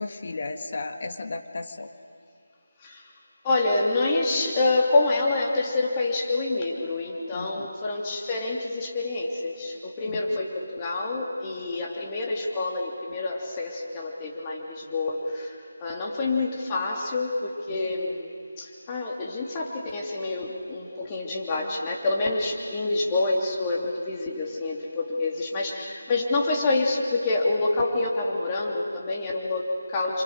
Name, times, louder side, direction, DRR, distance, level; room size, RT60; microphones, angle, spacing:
voice 1, 0.0-1.9 7.3-7.7 10.1-10.4 17.7-17.8, left 3 dB, 50° left, 6 dB, 1.9 m, -35 dB
voice 2, 3.4-18.3 18.6-30.2, left 2 dB, 20° left, -1 dB, 3.1 m, -27 dB
28.5 x 26.0 x 6.7 m, 2.3 s
figure-of-eight pair, 160°, 0 cm